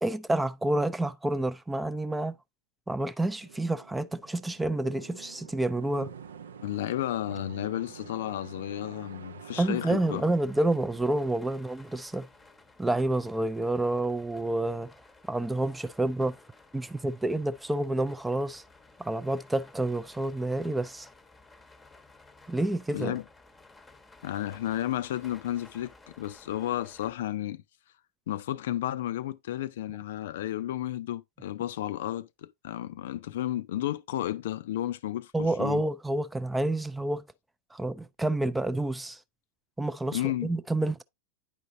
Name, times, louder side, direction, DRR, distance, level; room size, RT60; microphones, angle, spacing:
voice 1, 0.0-2.4 2.9-6.1 9.6-12.3 12.8-14.9 15.3-16.4 16.7-18.6 19.0-21.1 22.5-23.2 35.3-37.2 37.7-39.2 39.8-41.0, right 1 dB, 5° right, 0.4 m, -29 dB
sound 1, 3.4-12.2, right 7 dB, 65° right, 0.5 m, -48 dB
voice 2, 6.6-10.3 22.9-23.2 24.2-27.6 28.3-35.8 40.1-40.5, left 13 dB, 55° left, 0.4 m, -32 dB
sound 2, 9.9-27.1, left 3 dB, 10° left, 0.9 m, -55 dB
9.7 x 5.1 x 2.6 m
figure-of-eight pair, 90°, 0 cm